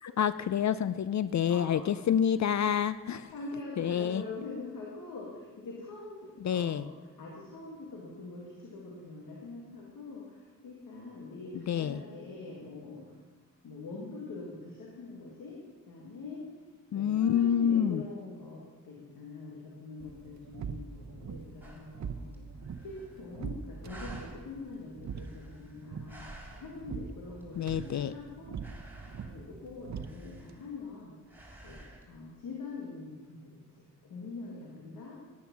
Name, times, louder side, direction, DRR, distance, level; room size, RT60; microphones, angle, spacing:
voice 1, 0.0-3.3 3.8-4.2 6.4-6.9 11.5-12.0 16.9-18.0 27.6-28.1, left 8 dB, 55° left, 15 dB, 0.5 m, -28 dB
voice 2, 1.5-1.9 3.3-6.9 7.2-13.0 13.6-15.6 15.8-16.5 16.9-22.5 22.8-26.3 26.6-28.6 29.2-31.1 31.6-31.8 32.1-35.2, left 3 dB, 90° left, -3 dB, 1.9 m, -44 dB
sound 1, 20.0-30.6, right 6 dB, 55° right, 0.8 m, -43 dB
sound 2, 21.6-21.9 22.3-22.4 22.6-23.5 23.8-24.5 25.0-26.9 27.4-28.2 28.6-29.5 30.0-30.9 31.3-32.1, right 1 dB, 5° right, 3.7 m, -51 dB
10.0 x 10.0 x 6.0 m, 1.3 s
supercardioid pair, 40°, 33 cm